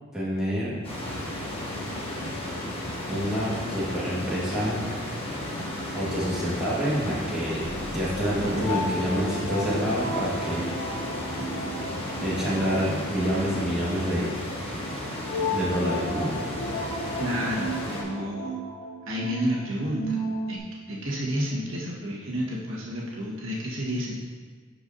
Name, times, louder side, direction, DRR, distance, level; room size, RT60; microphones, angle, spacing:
voice 1, 0.1-0.8 3.1-4.8 5.9-7.6 7.9-10.7 12.2-14.4 15.5-16.3 18.1-18.2, equal, 5° right, -9 dB, 1.6 m, -27 dB
sound 1, 0.8-18.0, left 1 dB, 30° left, 1.3 m, -34 dB
sound 2, 7.6-20.6, equal, 50° left, 1.4 m, -34 dB
voice 2, 17.2-18.5 19.0-20.2 20.5-20.6 20.9-24.2, equal, 75° right, -5 dB, 1.5 m, -30 dB
11.0 x 4.6 x 2.7 m, 1.5 s
head